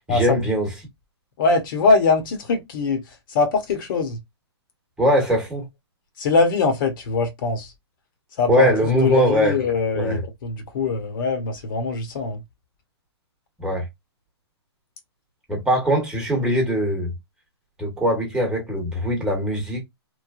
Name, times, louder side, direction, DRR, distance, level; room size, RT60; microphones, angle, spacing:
voice 1, 0.1-0.7 5.0-5.6 8.5-9.6 9.9-10.2 13.6-13.9 15.5-17.1 17.8-19.8, equal, 5° right, 1.1 m, -21 dB
voice 2, 1.4-3.0 3.3-4.2 6.2-7.7 8.4-8.7 9.0-12.4, left 4 dB, 50° left, 0.9 m, -22 dB
3.1 x 2.2 x 2.4 m
hypercardioid pair, 145°, 14 cm